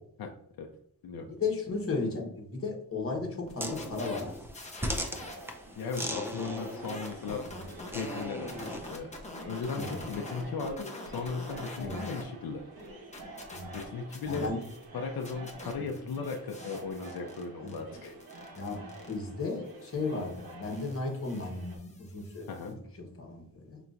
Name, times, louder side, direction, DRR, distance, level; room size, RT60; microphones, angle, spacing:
voice 1, 1.2-4.3 7.5-7.6 9.7-10.1 11.8-12.0 13.5-13.7 14.3-14.6 17.6-17.7 18.5-23.8, left 3 dB, 40° left, 1 dB, 1.2 m, -35 dB
sound 1, 3.5-5.5 5.8-12.2 12.6-14.9 15.2-22.7, left 2 dB, 20° left, 0.9 m, -46 dB
sound 2, 3.6-9.0, equal, 5° right, 0.5 m, -38 dB
sound 3, 5.1-21.8, right 2 dB, 75° right, 1.3 m, -48 dB
voice 2, 5.8-7.4 7.9-9.1 9.4-12.6 13.7-14.5 14.9-18.1 22.5-22.8, left 4 dB, 75° left, 3 dB, 0.6 m, -36 dB
5.6 x 3.0 x 2.6 m, 0.71 s
wide cardioid pair, 130°, 36 cm